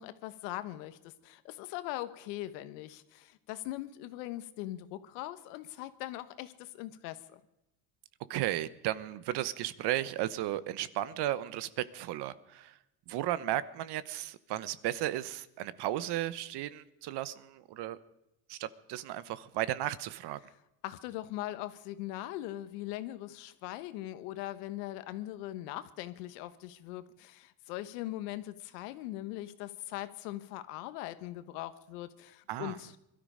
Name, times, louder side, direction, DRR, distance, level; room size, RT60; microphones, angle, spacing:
voice 1, 0.0-7.4 20.8-33.0, left 15 dB, 85° left, 12 dB, 1.2 m, -41 dB
voice 2, 8.3-12.8 13.1-18.0 18.5-20.4 32.5-32.8, right 13 dB, 60° right, 16 dB, 1.0 m, -34 dB
21.5 x 13.0 x 5.1 m, 0.90 s
supercardioid pair, 105°, 46 cm